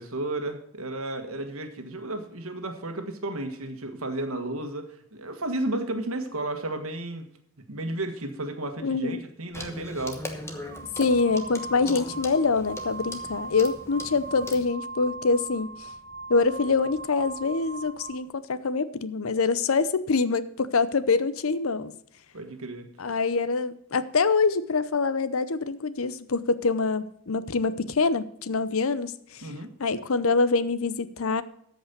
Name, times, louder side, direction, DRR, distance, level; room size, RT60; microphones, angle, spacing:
voice 1, 0.0-7.3 7.7-10.2 22.3-22.9 29.4-29.7, right 2 dB, 75° right, 6 dB, 1.6 m, -33 dB
voice 2, 8.8-9.2 11.0-15.9 16.3-21.9 23.0-29.5 29.8-31.4, left 4 dB, 75° left, 15 dB, 0.7 m, -25 dB
Clock, 9.5-14.7, left 2 dB, 10° left, 1.1 m, -40 dB
sound 1, 10.5-18.3, right 3 dB, 45° right, 0.9 m, -40 dB
13.5 x 5.4 x 6.7 m, 0.68 s
head